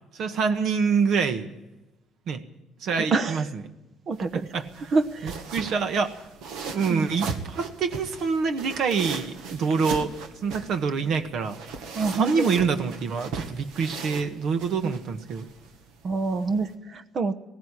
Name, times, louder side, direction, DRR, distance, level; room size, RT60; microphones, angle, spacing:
voice 1, 0.1-1.5 2.3-2.4 2.8-3.4 4.5-4.6 5.2-6.2 6.7-10.1 10.4-11.6 12.1-15.5, right 5 dB, 65° right, 8 dB, 1.5 m, -26 dB
voice 2, 3.0-3.5 4.1-4.5 4.9-5.4 6.9-7.1 11.9-12.5 14.8-14.9 16.0-17.3, right 3 dB, 45° right, 10 dB, 1.0 m, -26 dB
sound 1, 4.1-16.7, right 5 dB, 85° right, 1.8 m, -38 dB
17.0 x 15.5 x 9.9 m, 0.99 s
cardioid pair, 95°, 0 cm